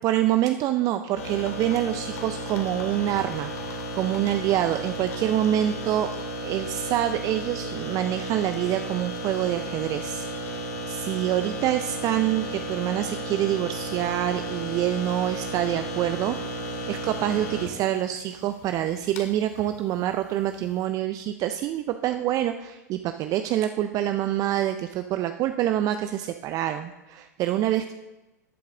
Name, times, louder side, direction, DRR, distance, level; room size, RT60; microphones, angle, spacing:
voice 1, 0.0-6.1 6.4-10.6 10.9-16.6 16.9-27.9, right 12 dB, 40° right, 9 dB, 0.5 m, -26 dB
sound 1, 1.1-20.8, right 1 dB, 65° left, 2.1 m, -34 dB
14.0 x 8.5 x 3.8 m, 1.1 s
hypercardioid pair, 100°, 9 cm